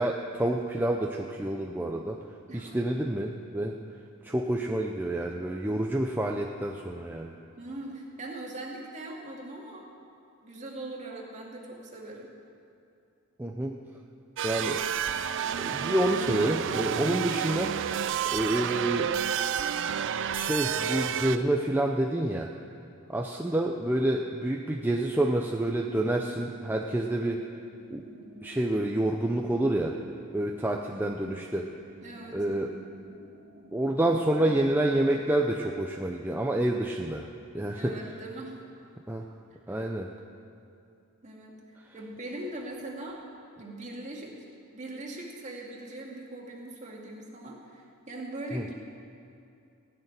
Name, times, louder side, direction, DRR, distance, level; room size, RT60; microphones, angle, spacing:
voice 1, 0.0-2.2 2.5-3.8 4.2-7.3 13.4-13.7 14.4-14.8 15.6-17.8 18.3-19.1 20.3-22.5 23.1-27.4 27.9-28.0 28.4-29.9 30.3-31.7 32.3-32.7 33.7-37.3 37.5-37.9 39.1-39.3 39.7-40.1 48.5-48.7, right 1 dB, 10° right, 1 dB, 0.6 m, -28 dB
voice 2, 7.6-9.9 10.4-12.3 32.0-32.4 37.8-38.6 39.7-39.8 41.2-43.2 43.6-44.4 44.7-48.7, right 1 dB, 35° right, -2 dB, 2.2 m, -41 dB
sound 1, 14.4-21.4, right 8 dB, 60° right, 0.5 m, -30 dB
sound 2, 25.1-35.2, right 1 dB, 85° right, 1.7 m, -49 dB
16.5 x 6.6 x 9.6 m, 2.6 s
head